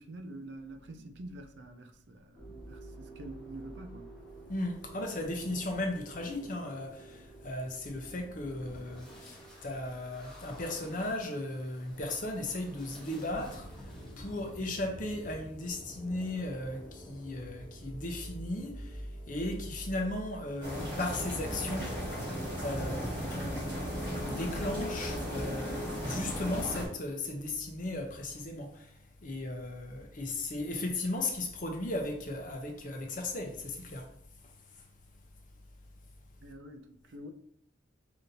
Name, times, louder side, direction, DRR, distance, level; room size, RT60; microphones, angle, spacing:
voice 1, 0.0-4.1 36.4-37.3, right 1 dB, 60° right, 0.4 m, -46 dB
sound 1, 2.3-21.3, right 1 dB, 5° left, 1.0 m, -48 dB
voice 2, 4.5-22.3 22.6-23.0 23.3-34.1 34.4-34.8, left 2 dB, 45° left, 0.6 m, -36 dB
sound 2, 20.6-26.9, equal, 25° right, 1.5 m, -35 dB
5.2 x 2.7 x 2.7 m
head